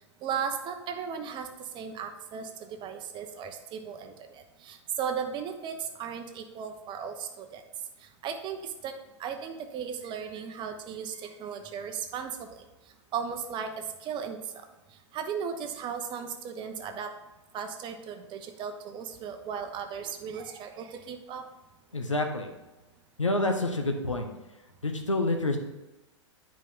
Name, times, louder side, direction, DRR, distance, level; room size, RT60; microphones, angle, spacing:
voice 1, 0.2-7.6 8.2-8.9 9.2-12.6 13.1-14.4 15.1-17.1 17.5-21.4, right 7 dB, 30° right, 7 dB, 0.9 m, -36 dB
voice 2, 21.9-22.5 23.2-24.3 24.8-25.6, left 2 dB, 90° left, 3 dB, 0.9 m, -27 dB
9.2 x 5.0 x 3.7 m, 1.1 s
figure-of-eight pair, 100°, 16 cm